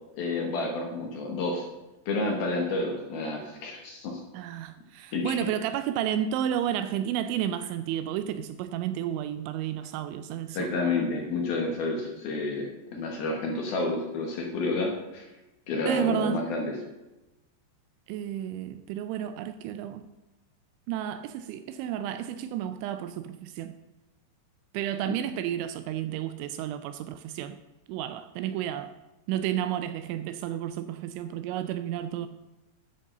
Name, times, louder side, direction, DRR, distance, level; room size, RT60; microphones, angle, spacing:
voice 1, 0.2-1.7 2.1-4.2 5.1-5.4 10.5-15.3 15.7-16.7 25.1-25.2, left 2 dB, 65° left, 2.6 m, -30 dB
voice 2, 4.3-10.7 15.9-16.4 18.1-20.1 20.9-23.8 24.7-27.6 27.9-28.9 29.3-32.3, right 10 dB, 85° right, 2.8 m, -31 dB
10.0 x 6.8 x 6.5 m
omnidirectional pair, 5.6 m